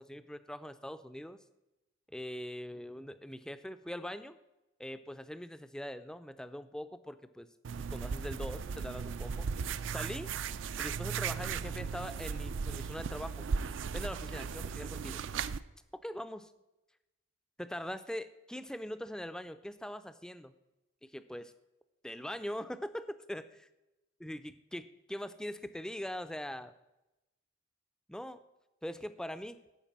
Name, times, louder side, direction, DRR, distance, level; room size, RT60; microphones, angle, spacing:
voice 1, 0.0-1.4 2.1-4.4 4.8-7.5 7.8-10.3 10.8-13.5 13.9-15.2 16.0-16.5 17.6-20.5 21.0-21.5 22.0-23.5 24.2-26.7 28.1-28.4 28.8-29.6, equal, 5° left, 11 dB, 0.4 m, -42 dB
sound 1, 7.6-15.6, right 6 dB, 70° right, 0.4 m, -37 dB
11.0 x 4.6 x 7.2 m, 0.99 s
head